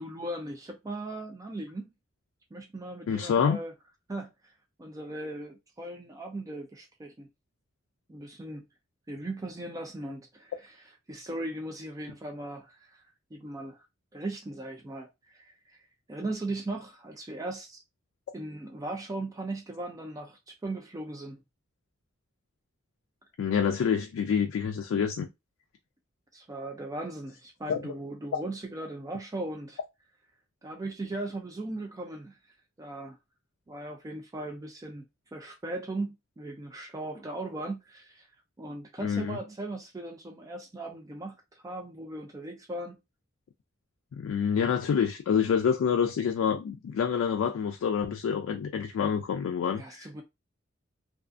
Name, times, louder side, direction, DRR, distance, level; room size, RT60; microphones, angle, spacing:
voice 1, 0.0-1.9 2.5-3.7 4.1-4.5 4.8-7.3 8.1-8.6 9.1-10.8 11.1-13.0 13.3-13.8 14.1-15.8 16.1-17.8 18.3-21.4 26.3-29.8 30.6-32.4 32.8-33.2 33.7-35.1 35.3-38.3 38.6-43.0 49.7-50.2, right 2 dB, 15° right, 0.3 m, -38 dB
voice 2, 3.1-3.6 23.4-25.3 27.7-27.9 28.3-28.4 39.0-39.4 44.1-50.1, left 7 dB, 90° left, 0.3 m, -27 dB
2.4 x 2.3 x 2.4 m
head